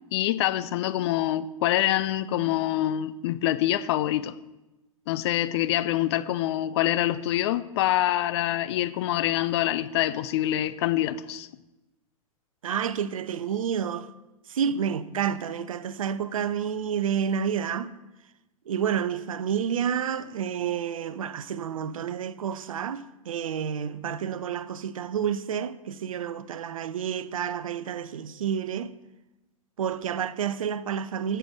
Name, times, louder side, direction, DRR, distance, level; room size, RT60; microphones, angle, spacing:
voice 1, 0.1-4.3 5.1-11.5, left 13 dB, 50° left, 0.5 m, -25 dB
voice 2, 12.6-14.1 14.5-17.9 18.7-28.9 29.8-31.4, right 8 dB, 65° right, 0.6 m, -29 dB
11.0 x 6.8 x 5.6 m
figure-of-eight pair, 100°, 18 cm